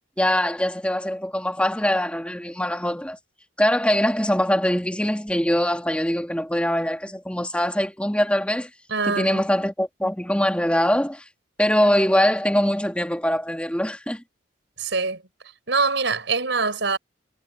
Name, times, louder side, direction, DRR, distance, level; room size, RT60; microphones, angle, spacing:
voice 1, 0.2-3.2 3.6-8.7 9.0-11.2 11.6-14.2, equal, 5° left, 2.1 m, -22 dB
voice 2, 8.9-9.4 14.8-15.2 15.7-17.0, right 4 dB, 75° right, 5.6 m, -24 dB
head